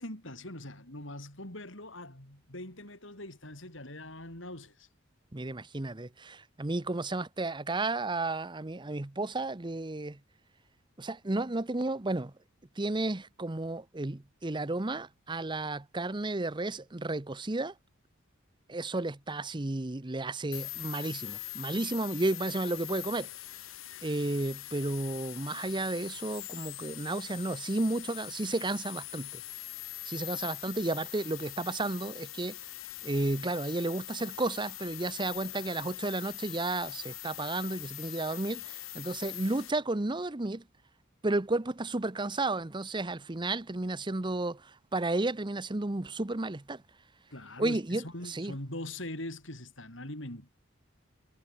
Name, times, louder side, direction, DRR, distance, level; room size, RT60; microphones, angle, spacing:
voice 1, 0.0-4.9 47.3-50.5, left 1 dB, 65° left, 7.6 m, -42 dB
voice 2, 5.3-10.2 11.0-12.3 12.8-17.7 18.7-23.3 24.0-29.4 30.0-32.6 33.0-40.6 41.2-46.8 47.6-48.5, right 2 dB, 25° right, 0.8 m, -32 dB
sound 1, 20.5-39.7, left 17 dB, 85° left, 1.5 m, -42 dB
head